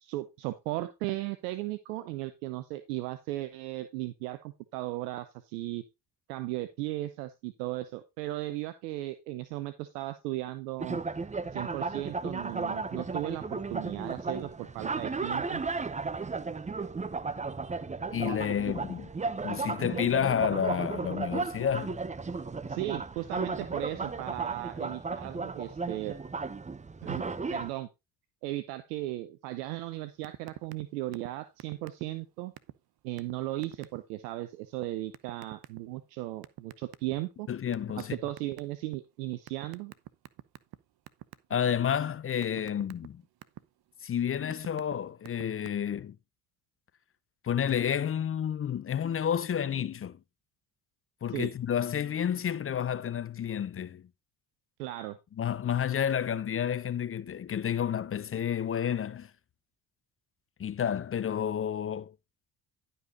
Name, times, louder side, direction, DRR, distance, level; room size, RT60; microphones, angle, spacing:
voice 1, 0.0-5.8 6.3-11.0 11.5-15.6 22.7-26.2 27.0-27.2 27.5-27.9 28.4-32.5 33.0-37.5 38.0-39.9 51.3-51.5 54.8-55.2, right 16 dB, 80° right, 0.8 m, -36 dB
sound 1, 10.8-27.7, right 4 dB, 15° right, 0.7 m, -35 dB
voice 2, 18.1-19.1 19.4-22.0 37.5-38.2 41.5-43.2 44.0-46.2 47.4-50.2 51.2-54.0 55.4-59.3 60.6-62.1, left 8 dB, 30° left, 0.5 m, -30 dB
sound 2, 30.2-30.8 31.1-31.3 31.6-32.2 32.6-32.7 33.2-33.3 33.6-34.0 35.1-35.8 36.4-37.3 37.7-39.0 39.5-40.8 41.1-41.5 41.9-43.6 44.2-44.9 45.2-45.7, right 14 dB, 50° right, 0.8 m, -44 dB
11.5 x 5.6 x 3.8 m
hypercardioid pair, 55°, 46 cm